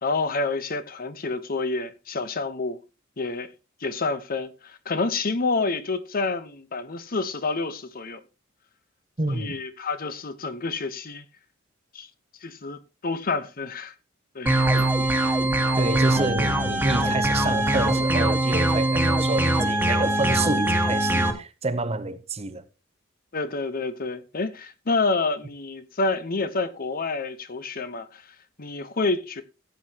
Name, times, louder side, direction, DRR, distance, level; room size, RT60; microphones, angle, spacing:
voice 1, 0.0-2.8 3.2-3.5 3.8-8.2 9.3-11.2 11.9-12.1 12.4-13.9 14.3-14.7 23.3-29.4, left 3 dB, 45° left, 0.9 m, -28 dB
voice 2, 9.2-9.6 15.8-22.6, right 2 dB, 30° right, 0.8 m, -28 dB
sound 1, 14.5-21.3, right 1 dB, 10° right, 1.5 m, -22 dB
15.0 x 8.5 x 2.9 m
head